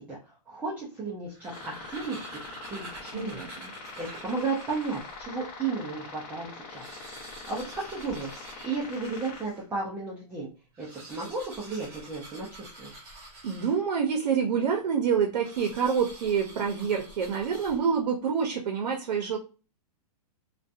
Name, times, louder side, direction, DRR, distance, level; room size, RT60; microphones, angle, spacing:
voice 1, 0.0-1.5 1.9-2.4 2.7-3.4 4.0-6.9 7.2-10.5 10.8-12.9, right 4 dB, 5° right, -5 dB, 0.3 m, -34 dB
sound 1, 1.1-5.3 5.9-6.0 6.2-6.3 6.6-9.7 10.6-14.1 15.4-18.1, right 1 dB, 25° right, 1.4 m, -47 dB
sound 2, 1.4-9.4, left 4 dB, 30° left, 0.8 m, -44 dB
voice 2, 3.1-3.7 13.4-19.4, right 6 dB, 75° right, 3 dB, 0.6 m, -27 dB
2.5 x 2.2 x 2.4 m, 0.33 s
hypercardioid pair, 155°, 21 cm